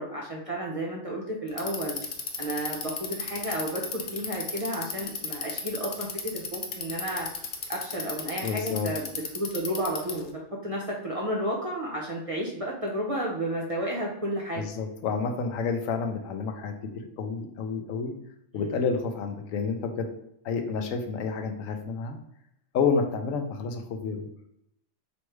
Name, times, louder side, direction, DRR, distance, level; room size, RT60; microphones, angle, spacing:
voice 1, 0.0-2.0 2.4-6.1 6.3-7.3 7.7-14.7, right 1 dB, 40° right, -3 dB, 0.6 m, -32 dB
Bicycle, 1.5-10.3, left 5 dB, 55° left, 0.6 m, -34 dB
voice 2, 8.4-8.9 14.6-18.1 18.5-20.1 20.4-22.2 22.7-24.3, left 5 dB, 85° left, 5 dB, 1.0 m, -29 dB
3.1 x 3.1 x 4.5 m, 0.77 s
omnidirectional pair, 1.3 m